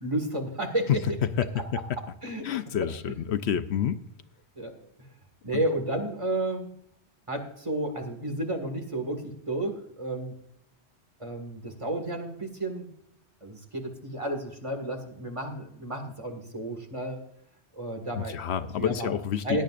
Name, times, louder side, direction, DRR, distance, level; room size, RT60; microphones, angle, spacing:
voice 1, 0.0-1.2 1.9-2.5 3.0-3.1 4.6-4.7 5.4-6.7 7.3-10.3 11.2-12.9 13.4-17.2 17.7-19.1 19.4-19.6, right 1 dB, 30° right, 4 dB, 1.9 m, -32 dB
voice 2, 2.4-4.0 18.1-19.6, left 9 dB, 75° left, 11 dB, 0.9 m, -29 dB
17.0 x 10.5 x 2.5 m, 0.72 s
omnidirectional pair, 1.1 m